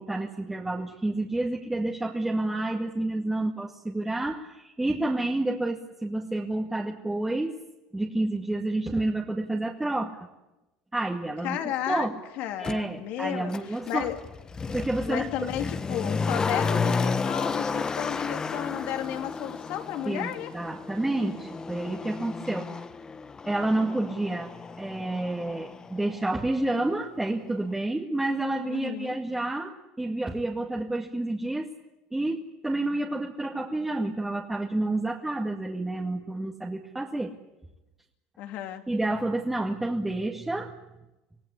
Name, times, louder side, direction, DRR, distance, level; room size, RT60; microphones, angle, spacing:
voice 1, 0.0-7.6 7.9-10.2 10.9-12.2 12.6-14.1 14.7-15.3 20.1-22.7 23.5-24.5 24.8-31.7 32.1-37.4 38.9-40.7, right 2 dB, 10° right, 0 dB, 2.1 m, -29 dB
voice 2, 11.4-12.1 12.4-13.5 13.9-14.2 15.1-20.5 28.7-29.2 38.4-38.8, left 11 dB, 65° left, 6 dB, 2.6 m, -33 dB
Motor vehicle (road), 12.6-12.8 13.5-26.4 26.7-26.8, left 4 dB, 25° left, 1.2 m, -32 dB
26.0 x 17.0 x 9.8 m, 1.0 s
supercardioid pair, 95°, 3 cm